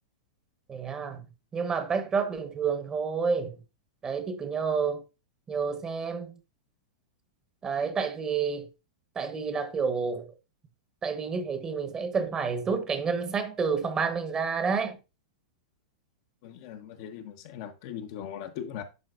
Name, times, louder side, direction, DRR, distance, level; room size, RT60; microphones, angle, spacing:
voice 1, 0.7-3.6 4.0-5.0 5.5-6.4 7.6-8.7 9.1-10.3 11.0-15.0, right 5 dB, 20° right, 1.1 m, -29 dB
voice 2, 16.4-18.8, left 9 dB, 55° left, 0.9 m, -39 dB
10.5 x 3.9 x 2.5 m
hypercardioid pair, 110°, 3 cm